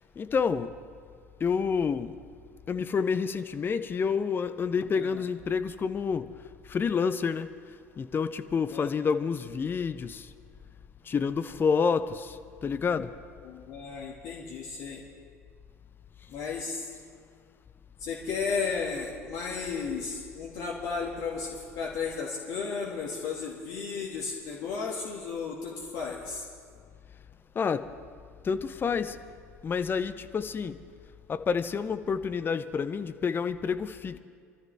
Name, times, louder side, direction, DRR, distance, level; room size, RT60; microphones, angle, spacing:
voice 1, 0.2-0.8 1.4-2.1 2.7-6.3 6.7-7.5 8.0-10.3 11.1-12.4 12.6-13.1 27.6-27.9 28.4-29.2 29.6-30.8 31.3-34.2, left 6 dB, 25° left, 0.6 m, -28 dB
voice 2, 13.4-15.0 16.3-16.9 18.0-26.5, left 5 dB, 50° left, 1.9 m, -34 dB
24.0 x 13.0 x 3.5 m
figure-of-eight pair, 70°, 8 cm